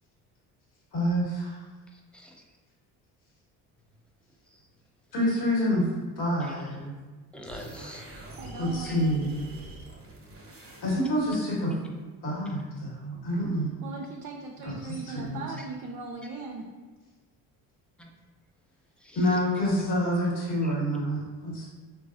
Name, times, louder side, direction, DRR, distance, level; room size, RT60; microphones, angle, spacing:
voice 1, 0.9-1.6 5.1-5.9 6.2-6.9 8.6-9.3 10.8-11.7 12.2-13.7 14.6-15.4 19.1-21.6, equal, 60° left, -5 dB, 1.5 m, -27 dB
voice 2, 1.9-2.4 6.4-6.5 7.3-8.1 8.8-9.0 11.7-11.8 12.8-12.9 18.0-18.1 19.0-19.4 20.6-20.7, equal, 5° left, 0 dB, 0.5 m, -44 dB
sound 1, 7.4-11.3, right 1 dB, 30° right, 1.0 m, -45 dB
voice 3, 8.3-9.3 13.8-16.6, right 3 dB, 50° right, 0 dB, 0.5 m, -39 dB
3.9 x 2.5 x 2.4 m, 1.3 s
hypercardioid pair, 65°, 43 cm